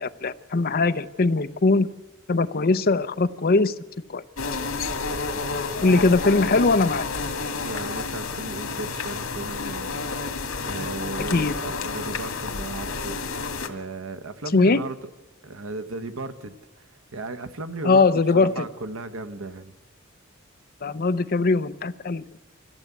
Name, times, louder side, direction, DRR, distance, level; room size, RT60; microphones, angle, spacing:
voice 1, 0.0-1.9 2.3-3.7 4.1-4.2 5.8-7.1 11.3-11.5 14.5-14.8 17.8-18.6 20.8-22.2, left 3 dB, 45° left, 11 dB, 0.7 m, -21 dB
sound 1, 4.4-13.7, left 4 dB, 90° left, 2.1 m, -30 dB
voice 2, 5.8-6.1 7.6-10.0 10.6-13.2 13.7-15.1 15.4-18.1 18.3-19.7, right 3 dB, 80° right, 10 dB, 1.2 m, -36 dB
24.5 x 15.0 x 8.2 m, 1.2 s
head